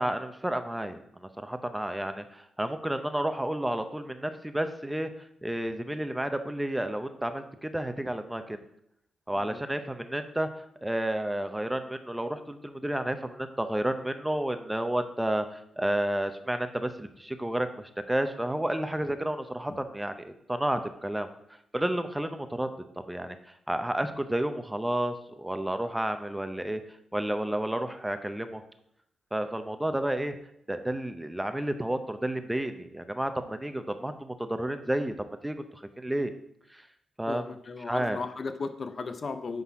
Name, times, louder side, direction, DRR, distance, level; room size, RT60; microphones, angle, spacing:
voice 1, 0.0-5.1 5.4-8.6 9.3-10.5 10.8-21.3 21.7-22.7 23.1-26.8 27.1-28.6 29.3-30.4 30.7-35.1 35.4-36.3 36.7-36.9 37.2-37.5 37.9-38.2, right 1 dB, 10° right, 8 dB, 0.7 m, -31 dB
voice 2, 37.3-39.6, left 4 dB, 50° left, 9 dB, 0.6 m, -36 dB
9.7 x 4.0 x 4.7 m, 0.74 s
cardioid pair, 80°, 0 cm